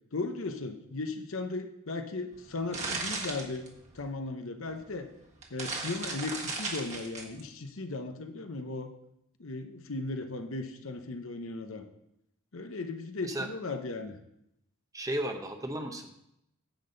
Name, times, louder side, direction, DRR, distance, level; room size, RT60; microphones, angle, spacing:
voice 1, 0.1-3.7 3.9-5.1 5.5-8.9 9.4-11.8 12.5-14.2, left 3 dB, 70° left, 6 dB, 0.9 m, -36 dB
sound 1, 2.3-4.1 4.8-4.9 5.3-7.4, right 3 dB, 35° right, 1.6 m, -36 dB
voice 2, 14.9-16.3, right 1 dB, 15° right, 5 dB, 0.8 m, -34 dB
10.0 x 7.8 x 4.0 m, 0.80 s
head